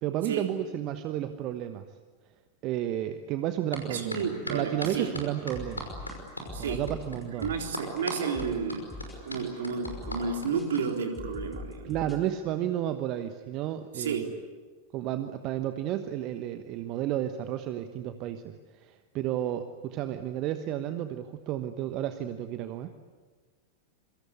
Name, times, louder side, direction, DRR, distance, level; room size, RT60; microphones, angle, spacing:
voice 1, 0.0-1.9 2.6-5.9 6.5-7.5 11.8-14.2 14.9-22.9, right 12 dB, 40° right, 10 dB, 1.2 m, -32 dB
sound 1, 3.7-3.8 4.1-10.8, equal, 85° left, 5.5 m, -37 dB
voice 2, 3.9-5.1 6.5-6.8 7.4-8.8 9.2-12.2 13.9-14.2, right 5 dB, 60° right, 3 dB, 3.8 m, -31 dB
sound 2, 5.5-12.2, left 2 dB, 10° left, 4.9 m, -42 dB
26.5 x 24.0 x 8.4 m, 1.4 s
figure-of-eight pair, 90°, 0 cm